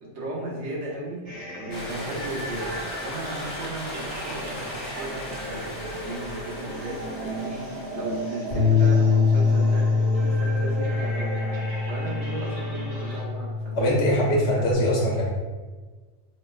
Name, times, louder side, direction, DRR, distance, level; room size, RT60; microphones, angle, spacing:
voice 1, 0.0-14.0 14.5-15.0, right 1 dB, 80° right, -5 dB, 1.2 m, -36 dB
sound 1, 1.3-13.2, right 1 dB, 40° right, 0.7 m, -36 dB
sound 2, 1.7-8.9, equal, 20° left, 0.6 m, -38 dB
Bass guitar, 8.5-14.8, left 4 dB, 50° left, 0.9 m, -24 dB
voice 2, 13.7-15.3, left 1 dB, 85° left, -2 dB, 1.0 m, -22 dB
4.3 x 2.1 x 2.3 m, 1.3 s
omnidirectional pair, 1.1 m